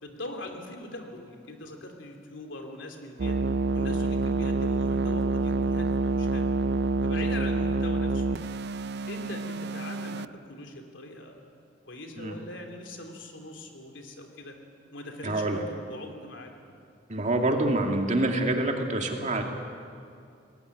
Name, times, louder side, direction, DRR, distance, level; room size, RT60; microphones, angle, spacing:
voice 1, 0.0-3.4 3.7-6.5 7.0-8.4 9.1-11.5 11.9-14.5 14.9-16.5, left 1 dB, 80° left, 3 dB, 3.1 m, -41 dB
sound 1, 3.2-10.3, right 3 dB, 60° right, 0.5 m, -27 dB
voice 2, 15.2-15.6 17.1-19.4, right 2 dB, 40° right, 2 dB, 2.4 m, -26 dB
21.5 x 18.5 x 9.7 m, 2.4 s
head